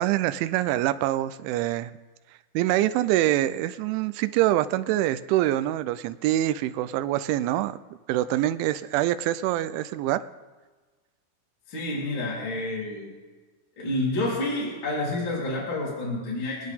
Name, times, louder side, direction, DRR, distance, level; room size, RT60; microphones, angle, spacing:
voice 1, 0.0-1.9 2.5-7.8 8.1-10.3, right 14 dB, 85° right, 13 dB, 3.0 m, -25 dB
voice 2, 11.7-13.1 13.8-16.7, left 2 dB, 25° left, -6 dB, 3.9 m, -29 dB
27.5 x 9.5 x 3.6 m, 1.3 s
omnidirectional pair, 5.4 m